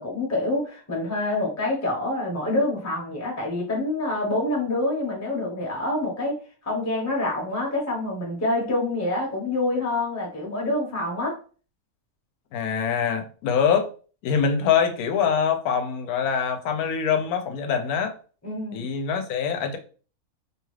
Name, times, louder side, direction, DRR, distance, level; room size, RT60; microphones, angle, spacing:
voice 1, 0.0-6.4 6.6-11.4 18.4-18.9, left 2 dB, 15° left, 0.7 m, -26 dB
voice 2, 12.5-13.9 14.2-18.1 18.7-19.8, left 7 dB, 85° left, 1.1 m, -24 dB
2.9 x 2.3 x 3.1 m
omnidirectional pair, 1.5 m